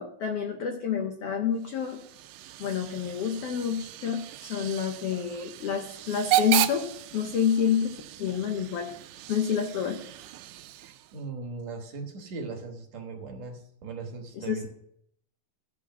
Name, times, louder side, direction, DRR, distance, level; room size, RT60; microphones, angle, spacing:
voice 1, 0.0-2.0 2.6-8.9 9.3-10.0 14.4-14.7, left 7 dB, 85° left, 4 dB, 1.3 m, -28 dB
Hiss / Train / Alarm, 1.6-11.2, right 14 dB, 85° right, 2.2 m, -34 dB
voice 2, 10.8-14.7, right 4 dB, 60° right, 2 dB, 2.2 m, -39 dB
14.5 x 5.1 x 5.9 m, 0.73 s
omnidirectional pair, 3.8 m